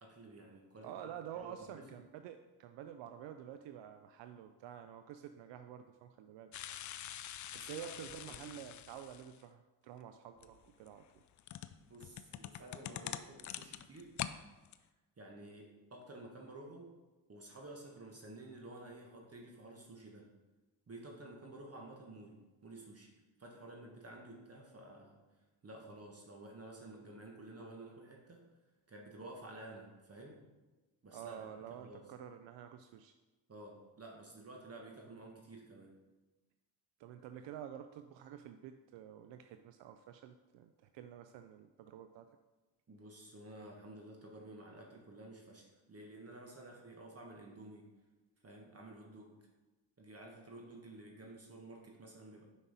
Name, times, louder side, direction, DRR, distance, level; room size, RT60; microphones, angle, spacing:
voice 1, 0.0-1.1 1.4-1.9 7.5-8.5 11.9-14.1 15.2-16.9 17.3-20.3 20.9-23.1 23.4-25.2 25.6-28.5 28.9-30.5 31.0-32.1 33.5-36.0 42.9-47.9 48.4-49.5 50.0-52.5, right 2 dB, 30° right, 0 dB, 1.3 m, -52 dB
voice 2, 0.8-6.5 7.5-11.2 31.1-33.1 37.0-42.3, right 9 dB, 70° right, 8 dB, 0.5 m, -49 dB
sound 1, 6.5-9.4 10.4-14.4 14.7-14.8, left 11 dB, 45° left, 0.4 m, -45 dB
6.0 x 5.5 x 4.0 m, 1.1 s
supercardioid pair, 70°, 46 cm